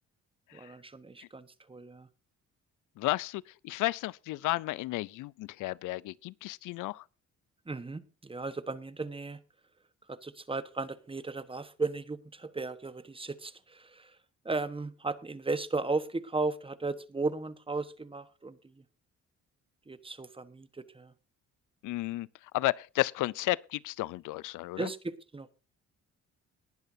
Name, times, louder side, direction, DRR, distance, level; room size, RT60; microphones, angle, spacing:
voice 1, 0.5-2.1 7.7-9.4 10.1-14.2 14.4-18.8 19.9-21.1 24.8-25.5, right 3 dB, 20° right, 1.2 m, -36 dB
voice 2, 3.0-7.0 21.8-22.3 22.5-24.9, left 18 dB, 85° left, 0.5 m, -33 dB
19.5 x 10.5 x 2.7 m
cardioid pair, 90°, 30 cm